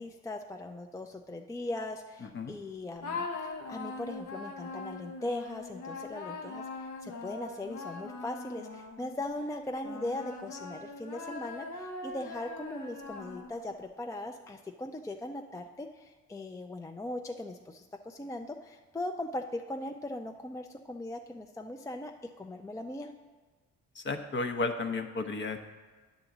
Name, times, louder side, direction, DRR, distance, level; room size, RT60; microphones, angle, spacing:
voice 1, 0.0-22.1 22.4-23.1, left 1 dB, 10° left, 5 dB, 0.4 m, -39 dB
voice 2, 2.2-2.5 23.9-25.6, left 3 dB, 40° left, 7 dB, 0.8 m, -33 dB
sound 1, 3.0-9.2 9.8-13.7, left 3 dB, 85° left, 1.1 m, -41 dB
9.0 x 3.9 x 7.1 m, 1.3 s
cardioid pair, 90°, 30 cm